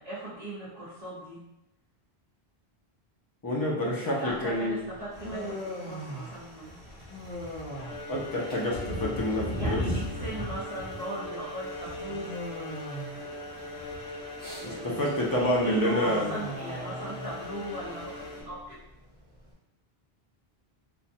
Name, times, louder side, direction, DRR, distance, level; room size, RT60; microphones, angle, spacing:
voice 1, 0.0-1.4 4.0-6.8 9.5-12.3 14.6-18.8, right 1 dB, 40° right, -13 dB, 1.1 m, -39 dB
voice 2, 3.4-4.9 8.1-9.8 14.6-16.3, left 1 dB, 35° left, -4 dB, 0.3 m, -28 dB
Human voice, 4.3-19.5, equal, 10° left, 0.8 m, -42 dB
sound 1, 5.1-18.4, equal, 70° right, 1.1 m, -40 dB
Bowed string instrument, 7.7-18.8, left 1 dB, 85° left, 0.8 m, -41 dB
2.6 x 2.2 x 2.6 m, 0.85 s
omnidirectional pair, 1.1 m